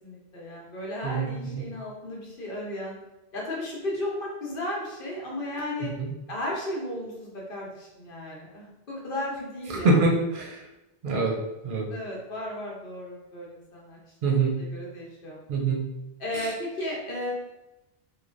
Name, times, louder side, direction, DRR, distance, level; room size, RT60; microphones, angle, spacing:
voice 1, 0.0-3.0 3.3-5.9 6.3-10.0 11.9-14.0 14.2-15.4 16.2-17.3, left 1 dB, 60° left, -4 dB, 0.9 m, -34 dB
voice 2, 9.7-10.6 11.0-11.4 11.6-11.9 14.2-14.5 15.5-15.8, right 3 dB, 60° right, 0 dB, 0.7 m, -24 dB
3.1 x 2.2 x 2.5 m, 0.97 s
omnidirectional pair, 1.1 m